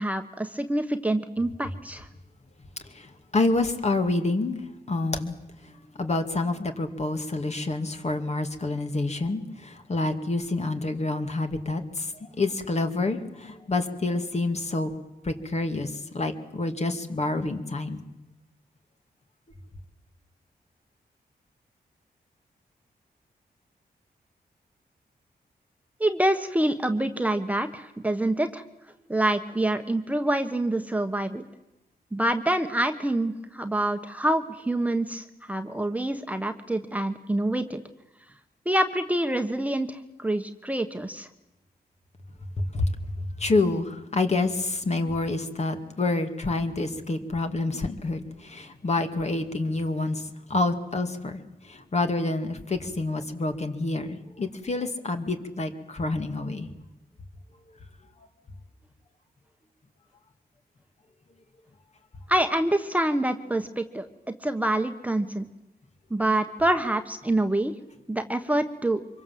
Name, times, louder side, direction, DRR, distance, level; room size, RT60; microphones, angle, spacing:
voice 1, 0.0-2.1 26.0-28.6 29.1-31.4 32.1-37.8 38.6-41.3 62.3-64.1 64.4-65.5 66.1-67.7 68.1-69.0, right 1 dB, 10° right, 6 dB, 1.3 m, -26 dB
voice 2, 3.3-4.6 4.9-5.3 6.0-9.4 9.9-11.8 12.4-14.9 15.3-15.9 16.1-18.0 42.7-42.8 43.4-50.2 50.5-51.4 51.9-56.7, left 2 dB, 40° left, 6 dB, 2.3 m, -27 dB
25.5 x 23.0 x 7.7 m, 0.95 s
cardioid pair, 85°, 17 cm